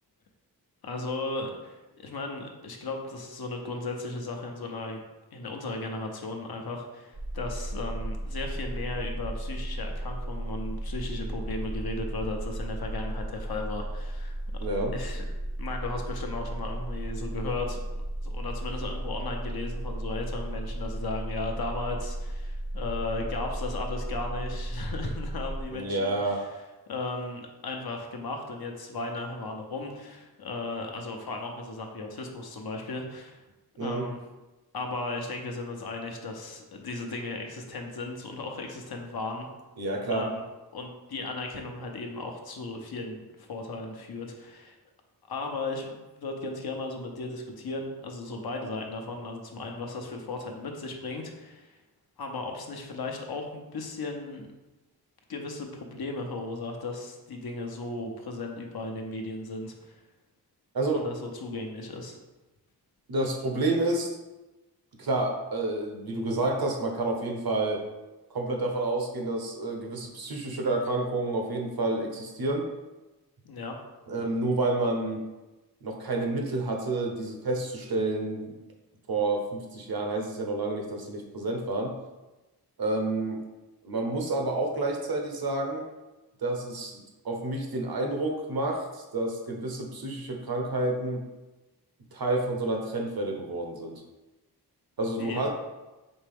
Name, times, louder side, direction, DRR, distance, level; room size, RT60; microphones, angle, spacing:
voice 1, 0.8-5.0 5.3-14.4 14.9-15.2 15.6-26.5 26.9-33.4 33.8-34.2 34.7-39.5 40.1-40.4 40.7-44.7 45.3-51.8 52.2-54.5 55.3-60.0 60.9-62.2 73.4-73.8 95.2-95.5, left 2 dB, 65° left, 2 dB, 0.8 m, -36 dB
sound 1, 7.1-25.6, right 1 dB, 25° right, 0.5 m, -34 dB
voice 2, 14.6-14.9 25.7-26.4 33.8-34.1 39.8-40.3 60.7-61.0 63.1-64.1 65.0-67.8 68.3-72.7 74.1-75.3 75.8-78.6 79.1-81.9 82.8-83.4 83.8-85.8 86.4-91.2 92.1-94.0 95.0-95.5, right 2 dB, 65° right, 2 dB, 0.9 m, -29 dB
4.3 x 3.3 x 3.5 m, 1.1 s
cardioid pair, 60°, 40 cm